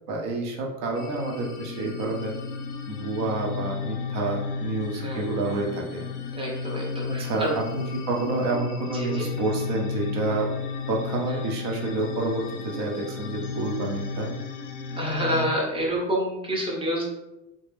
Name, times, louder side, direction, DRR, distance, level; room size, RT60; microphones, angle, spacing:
voice 1, 0.1-2.4 2.9-6.1 7.1-10.5 10.9-14.3, right 3 dB, 40° right, 0 dB, 0.9 m, -29 dB
sound 1, 0.9-15.4, left 5 dB, 65° left, 0.6 m, -33 dB
voice 2, 6.4-7.5 8.9-9.3 11.3-11.4 15.0-17.0, equal, 10° right, -3 dB, 0.9 m, -28 dB
3.2 x 2.2 x 3.3 m, 0.95 s
figure-of-eight pair, 80°, 49 cm